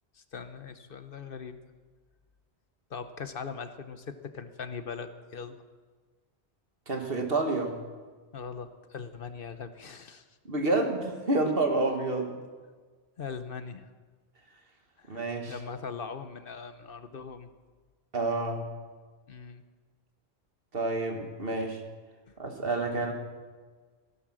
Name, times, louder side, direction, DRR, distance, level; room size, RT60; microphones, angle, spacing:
voice 1, 0.1-1.6 2.9-5.6 8.3-10.3 13.2-13.9 15.0-17.5 19.3-19.6 22.3-22.4, left 5 dB, 60° left, 10 dB, 1.0 m, -40 dB
voice 2, 6.9-7.8 10.5-12.4 15.1-15.5 18.1-18.7 20.7-21.8 22.4-23.1, right 2 dB, 60° right, 4 dB, 2.0 m, -29 dB
16.0 x 11.5 x 6.3 m, 1.4 s
omnidirectional pair, 1.1 m